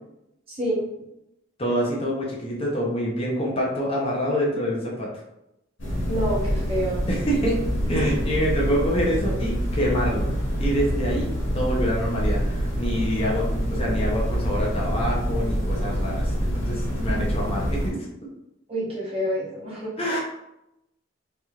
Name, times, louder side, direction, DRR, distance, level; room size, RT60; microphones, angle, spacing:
voice 1, 0.5-0.8 6.1-7.0 18.7-20.2, equal, 30° right, -6 dB, 1.0 m, -28 dB
voice 2, 1.6-5.1 7.1-7.6 7.9-10.3 10.6-18.0 20.0-20.2, equal, 30° left, -3 dB, 0.7 m, -26 dB
sound 1, 5.8-17.9, equal, 90° left, 1.3 m, -26 dB
3.3 x 2.8 x 2.3 m, 0.86 s
head